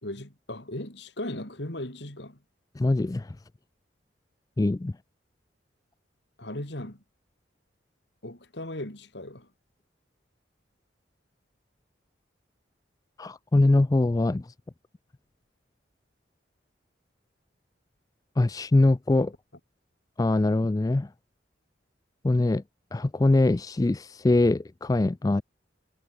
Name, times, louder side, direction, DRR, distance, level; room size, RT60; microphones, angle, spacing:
voice 1, 0.0-2.4 6.4-7.0 8.2-9.5, left 1 dB, 65° left, 3.8 m, -37 dB
voice 2, 2.8-3.4 4.6-4.9 13.2-14.5 18.4-19.3 20.2-21.1 22.2-22.6 22.9-25.4, left 2 dB, 20° left, 0.3 m, -23 dB
head